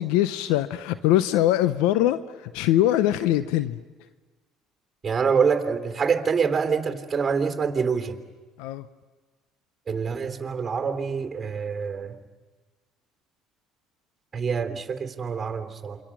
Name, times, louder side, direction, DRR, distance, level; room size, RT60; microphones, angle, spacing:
voice 1, 0.0-3.8 8.6-8.9, left 13 dB, 75° left, 13 dB, 0.7 m, -22 dB
voice 2, 5.0-8.2 9.9-12.1 14.3-16.0, right 6 dB, 30° right, 6 dB, 3.3 m, -26 dB
28.0 x 25.0 x 6.2 m, 1.3 s
supercardioid pair, 80°, 0 cm